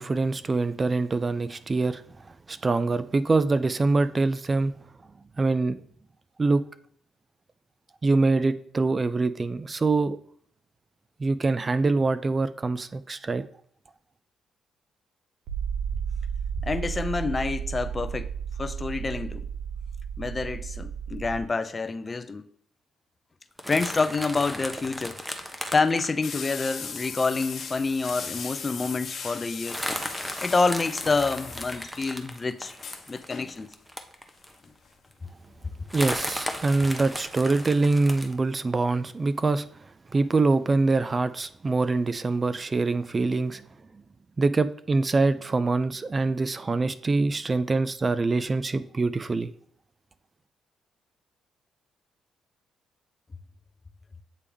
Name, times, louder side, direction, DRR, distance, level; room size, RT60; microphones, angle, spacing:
voice 1, 0.0-2.0 2.5-4.7 5.4-5.8 6.4-6.6 8.0-10.2 11.2-13.4 35.9-39.7 40.1-43.6 44.4-49.5, right 3 dB, 30° right, 0.3 m, -24 dB
sound 1, 15.5-21.4, right 7 dB, 90° right, 0.6 m, -33 dB
voice 2, 16.6-18.3 18.6-19.4 20.2-22.5 23.7-25.2 25.7-29.8 30.4-32.7 33.1-33.7, left 3 dB, 30° left, 0.5 m, -27 dB
sound 2, 23.6-27.6 28.1-28.2 28.5-28.6 28.8-29.1 29.6-34.6 35.1-35.2 35.9-38.3, equal, ahead, 0.8 m, -36 dB
sound 3, 26.2-32.1 32.4-32.5 32.7-33.6 34.6-34.9 35.5-36.8 37.0-37.1 37.5-37.6, left 5 dB, 60° left, 1.3 m, -39 dB
8.4 x 3.4 x 3.4 m
cardioid pair, 90°, 0 cm